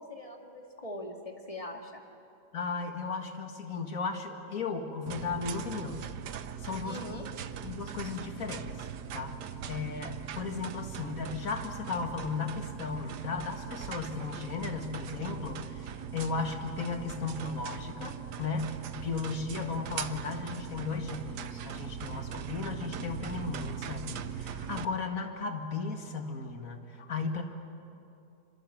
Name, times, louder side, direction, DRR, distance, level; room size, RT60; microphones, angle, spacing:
voice 1, 0.0-2.0 6.8-7.3, left 1 dB, 20° left, 2 dB, 2.5 m, -42 dB
voice 2, 2.5-6.0 6.6-7.2 7.6-8.9 9.1-9.4 9.7-27.4, left 4 dB, 60° left, 5 dB, 2.4 m, -35 dB
sound 1, 5.1-24.9, right 8 dB, 85° right, 1.5 m, -40 dB
26.0 x 26.0 x 7.8 m, 2.7 s
omnidirectional pair, 1.7 m